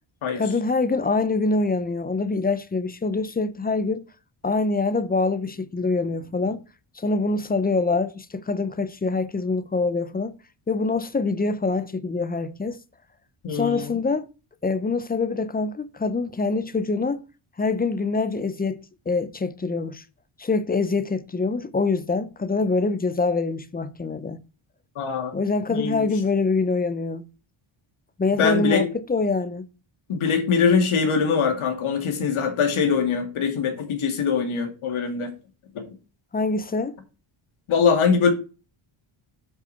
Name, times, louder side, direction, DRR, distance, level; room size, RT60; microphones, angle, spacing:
voice 1, 0.4-4.1 4.4-6.6 7.0-10.4 10.7-12.8 13.5-14.3 14.6-17.2 17.6-20.0 20.4-24.4 25.3-27.3 28.2-29.7 36.3-37.0, left 3 dB, 20° left, 0.5 m, -25 dB
voice 2, 13.4-13.9 25.0-25.3 25.7-26.1 28.4-28.9 30.1-35.3 35.7-35.9 37.7-38.3, left 6 dB, 75° left, 2.4 m, -22 dB
8.2 x 5.5 x 5.7 m
wide cardioid pair, 160°, 50 cm